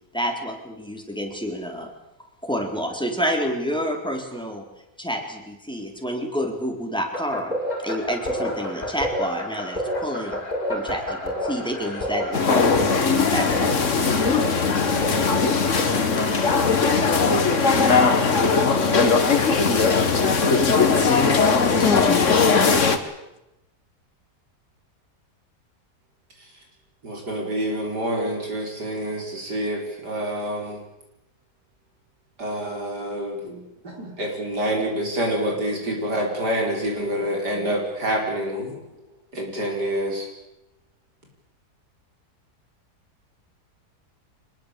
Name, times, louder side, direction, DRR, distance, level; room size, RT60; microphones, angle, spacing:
voice 1, 0.1-1.9 2.4-4.6 5.0-7.5 7.8-10.4 10.7-14.1, equal, 5° left, 4.2 m, -29 dB
sound 1, 7.1-22.0, left 1 dB, 25° left, 5.7 m, -32 dB
sound 2, 12.3-23.0, left 4 dB, 50° left, 2.0 m, -19 dB
voice 2, 21.6-22.8, left 6 dB, 80° left, 2.8 m, -26 dB
voice 3, 27.0-30.8 32.4-38.7 39.3-40.3, equal, 90° right, 6.1 m, -27 dB
24.5 x 20.5 x 8.5 m
omnidirectional pair, 1.7 m